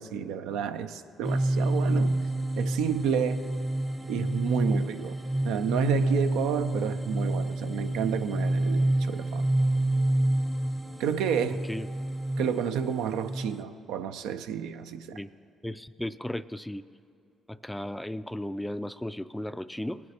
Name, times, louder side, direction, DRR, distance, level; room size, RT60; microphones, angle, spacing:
voice 1, 0.0-2.2 2.6-3.4 4.1-5.2 5.4-9.5 11.0-11.6 12.4-15.2, right 8 dB, 85° right, 9 dB, 0.4 m, -30 dB
sound 1, 1.2-13.6, right 1 dB, 20° right, 0.7 m, -28 dB
voice 2, 15.6-16.8 17.5-20.0, left 1 dB, 5° left, 14 dB, 0.3 m, -35 dB
19.0 x 9.4 x 2.9 m, 2.5 s
supercardioid pair, 60°, 0 cm